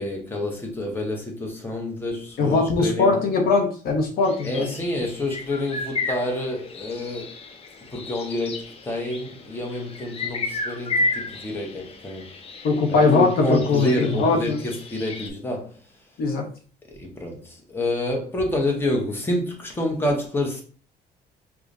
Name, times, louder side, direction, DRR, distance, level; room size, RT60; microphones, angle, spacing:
voice 1, 0.0-3.2 4.4-7.5 7.9-12.3 12.9-16.1 16.9-20.6, left 1 dB, 15° left, 1.0 m, -28 dB
voice 2, 2.4-4.7 12.6-14.6 16.2-16.5, left 3 dB, 65° left, 0.9 m, -21 dB
sound 1, 4.2-15.3, left 2 dB, 35° left, 0.6 m, -33 dB
4.9 x 2.3 x 2.6 m
cardioid pair, 110°, 17 cm